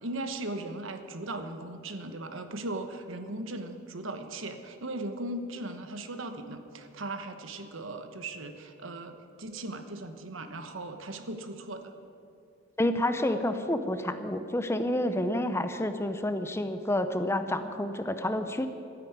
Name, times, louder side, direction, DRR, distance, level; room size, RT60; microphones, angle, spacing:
voice 1, 0.0-11.9, right 2 dB, 70° right, 8 dB, 1.2 m, -38 dB
voice 2, 12.8-18.7, left 1 dB, 15° left, 9 dB, 0.6 m, -29 dB
12.5 x 10.5 x 9.5 m, 2.7 s
head